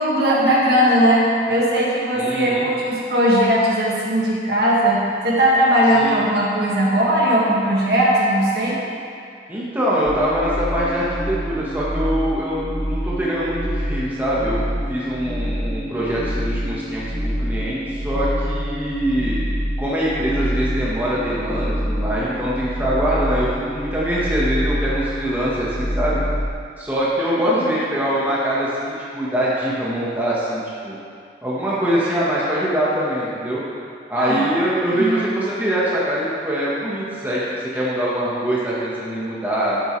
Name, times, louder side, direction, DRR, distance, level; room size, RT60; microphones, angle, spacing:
voice 1, 0.0-8.8 27.4-27.7 34.2-34.5 34.9-35.3, equal, 60° right, -6 dB, 2.0 m, -18 dB
voice 2, 2.1-2.7 6.0-6.2 9.5-14.6 14.9-19.4 19.8-26.2 26.8-30.9 31.4-33.6 34.1-37.5 37.7-39.8, equal, 10° right, -8 dB, 1.4 m, -23 dB
sound 1, 10.1-26.5, equal, 15° left, 1.1 m, -26 dB
11.5 x 9.0 x 3.3 m, 2.3 s
head